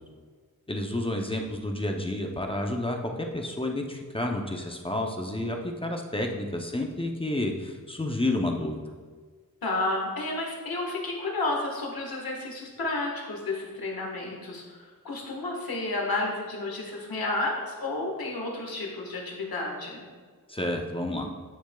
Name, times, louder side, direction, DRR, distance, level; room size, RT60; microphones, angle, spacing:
voice 1, 0.7-8.8 20.5-21.3, left 1 dB, 15° left, 2 dB, 0.5 m, -30 dB
voice 2, 9.6-14.8 15.0-20.0, left 2 dB, 90° left, 0 dB, 1.4 m, -31 dB
10.0 x 6.2 x 2.2 m, 1.6 s
wide cardioid pair, 110°, 35 cm